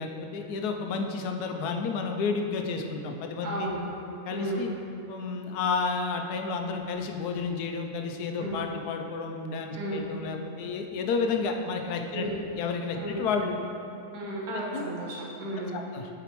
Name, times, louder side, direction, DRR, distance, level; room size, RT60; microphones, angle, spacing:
voice 1, 0.0-3.7 4.3-4.7 5.1-12.3 12.6-13.5 14.7-14.8 15.7-16.1, left 4 dB, 80° left, 4 dB, 1.1 m, -31 dB
voice 2, 3.4-3.8 4.3-4.7 8.4-8.6 9.7-10.0 12.1-12.3 12.9-13.2 14.1-15.8, right 1 dB, 75° right, -4 dB, 1.7 m, -33 dB
8.2 x 4.9 x 3.0 m, 2.7 s
omnidirectional pair, 1.6 m